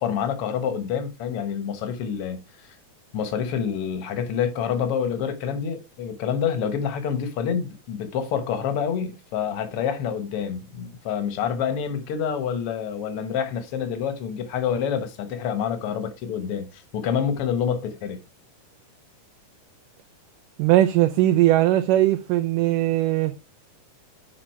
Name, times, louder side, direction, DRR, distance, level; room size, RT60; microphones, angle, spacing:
voice 1, 0.0-2.4 3.1-18.2, left 7 dB, 55° left, 1.8 m, -27 dB
voice 2, 20.6-23.3, right 14 dB, 90° right, 2.2 m, -19 dB
7.5 x 5.0 x 4.7 m
omnidirectional pair, 3.7 m